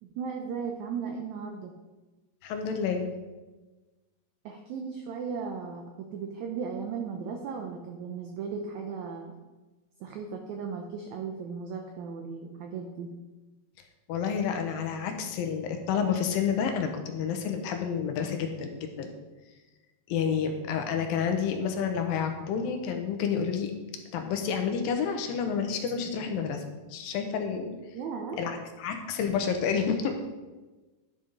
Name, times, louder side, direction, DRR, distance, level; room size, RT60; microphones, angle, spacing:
voice 1, 0.0-1.8 4.4-9.3 10.0-13.1 27.9-28.4, right 5 dB, 85° right, 3 dB, 1.6 m, -36 dB
voice 2, 2.4-3.1 14.1-19.1 20.1-23.7 24.1-26.6 26.9-27.8 28.4-30.2, left 7 dB, 80° left, 5 dB, 2.6 m, -29 dB
11.0 x 5.5 x 4.0 m, 1.2 s
omnidirectional pair, 4.1 m